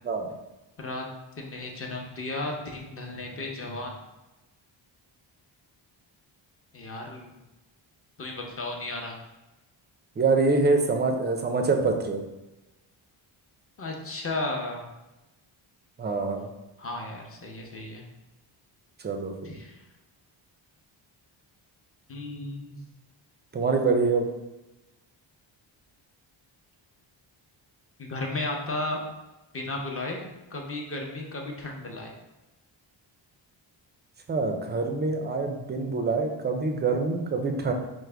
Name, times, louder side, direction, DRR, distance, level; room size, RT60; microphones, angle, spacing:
voice 1, 1.4-4.0 6.7-7.3 8.2-9.2 13.8-14.9 16.8-18.1 19.4-19.8 22.1-22.8 28.0-29.1 29.5-32.1, left 2 dB, 30° left, 1 dB, 0.6 m, -34 dB
voice 2, 10.2-12.2 16.0-16.5 19.0-19.5 23.5-24.3 34.3-37.7, right 3 dB, 25° right, 4 dB, 0.4 m, -25 dB
4.6 x 2.1 x 3.3 m, 1.0 s
cardioid pair, 110°, 47 cm